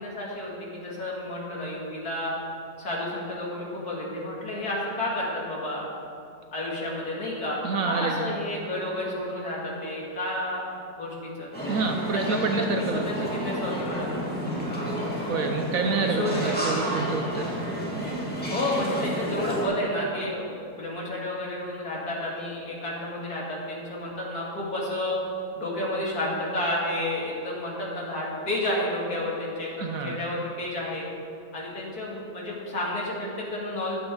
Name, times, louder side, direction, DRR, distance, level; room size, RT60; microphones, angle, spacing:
voice 1, 0.0-2.3 2.8-5.9 6.5-10.7 11.0-11.5 12.1-14.1 15.9-16.6 18.5-25.1 25.6-31.0 31.5-33.9, left 1 dB, 60° left, -5 dB, 3.0 m, -31 dB
voice 2, 7.6-8.3 11.7-13.3 15.3-17.5 29.8-30.2, right 4 dB, 60° right, 4 dB, 1.1 m, -28 dB
sound 1, 11.5-19.6, equal, 5° left, 2.4 m, -31 dB
15.0 x 10.5 x 3.9 m, 2.5 s
omnidirectional pair, 1.8 m